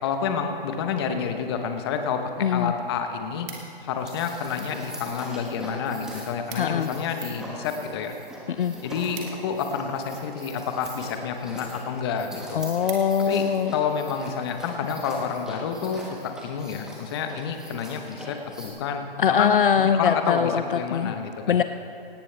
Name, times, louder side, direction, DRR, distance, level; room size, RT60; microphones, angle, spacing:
voice 1, 0.0-3.5 3.8-8.1 8.8-12.6 13.3-13.5 13.7-19.1 19.4-21.6, left 6 dB, 25° left, 6 dB, 1.0 m, -29 dB
voice 2, 2.4-2.7 6.6-6.9 8.6-8.7 12.5-13.7 19.2-20.6 20.9-21.1 21.5-21.6, left 7 dB, 60° left, 10 dB, 0.6 m, -22 dB
sound 1, 3.5-4.1 4.8-5.3 5.6-5.7 6.0-6.1 6.3-6.9 7.3-10.1 10.8-11.2 11.7-11.8 12.1-12.2 12.5-13.5 14.0-14.2, right 6 dB, 20° right, 1.5 m, -44 dB
sound 2, 3.9-18.7, right 1 dB, ahead, 1.3 m, -41 dB
17.5 x 17.0 x 3.3 m, 2.6 s
hypercardioid pair, 150°, 30 cm